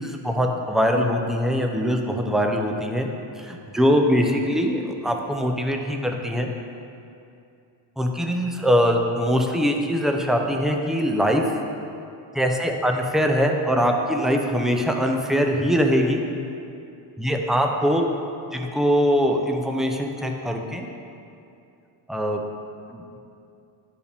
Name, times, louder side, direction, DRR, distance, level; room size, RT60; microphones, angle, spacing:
voice 1, 0.0-3.1 3.4-6.5 8.0-11.4 12.3-16.2 17.2-18.0 18.5-20.9 22.1-22.4 22.9-23.2, equal, ahead, 2 dB, 0.4 m, -22 dB
12.0 x 4.7 x 3.4 m, 2.6 s
cardioid pair, 125°, 48 cm